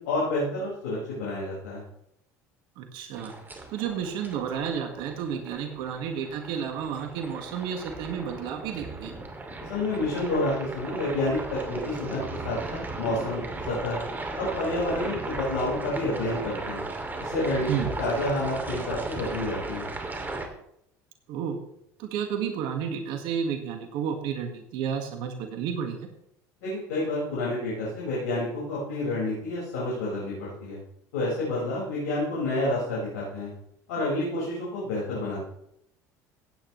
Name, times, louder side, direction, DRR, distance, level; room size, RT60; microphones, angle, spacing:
voice 1, 0.0-1.8 9.7-14.0 14.4-16.8 17.2-17.7 18.0-19.9 26.6-30.8 31.1-33.5 33.9-35.5, left 2 dB, 85° left, -7 dB, 5.5 m, -29 dB
voice 2, 2.8-3.3 3.7-9.1 17.7-17.9 21.3-21.6 22.0-26.1, right 7 dB, 70° right, 5 dB, 1.8 m, -31 dB
sound 1, 3.1-20.5, right 2 dB, 20° right, 2.5 m, -36 dB
17.0 x 9.3 x 3.2 m, 0.75 s
hypercardioid pair, 80°, 9 cm